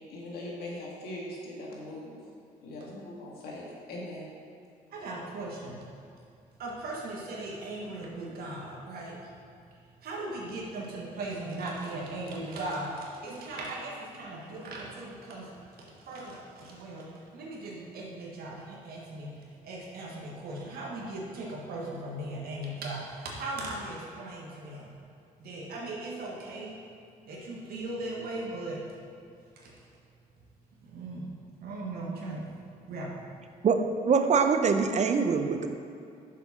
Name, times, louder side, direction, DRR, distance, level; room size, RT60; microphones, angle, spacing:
voice 1, 0.1-2.2 2.6-4.3, left 1 dB, 80° left, -3 dB, 1.8 m, -40 dB
voice 2, 4.9-5.9 6.6-9.3 10.0-15.5 15.8-24.9 25.4-26.8 27.2-28.9 29.6-29.8 30.8-31.3 31.6-32.5 32.9-33.1, right 2 dB, 75° right, -2 dB, 1.5 m, -38 dB
voice 3, 34.0-35.7, right 5 dB, 45° right, 7 dB, 0.7 m, -23 dB
6.6 x 5.1 x 5.8 m, 2.5 s
supercardioid pair, 70°, 16 cm